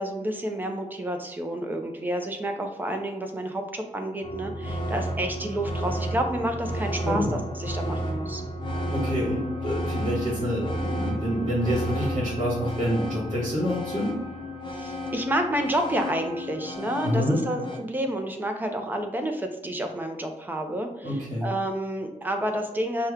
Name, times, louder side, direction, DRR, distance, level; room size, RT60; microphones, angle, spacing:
voice 1, 0.0-8.4 14.7-23.1, right 1 dB, 15° right, 4 dB, 0.5 m, -30 dB
sound 1, 4.2-17.8, equal, 35° left, 0.6 m, -32 dB
voice 2, 8.9-14.1 17.0-17.4 21.0-21.5, equal, 50° right, -5 dB, 1.6 m, -27 dB
5.9 x 2.2 x 3.5 m, 0.95 s
wide cardioid pair, 165°, 14 cm